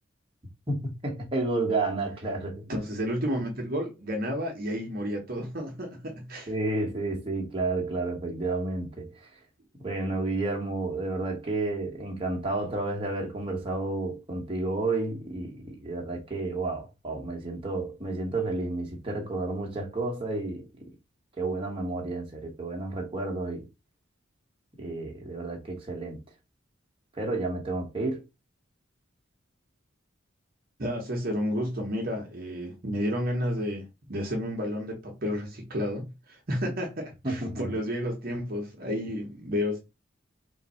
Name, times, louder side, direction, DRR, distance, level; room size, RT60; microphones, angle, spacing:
voice 1, 0.7-2.6 6.5-9.3 9.8-20.6 21.4-23.7 24.8-26.2 27.1-28.2 37.2-37.8, right 2 dB, 25° right, 1.1 m, -31 dB
voice 2, 2.7-6.5 30.8-39.8, equal, 45° right, 0.9 m, -31 dB
3.6 x 2.6 x 4.2 m
head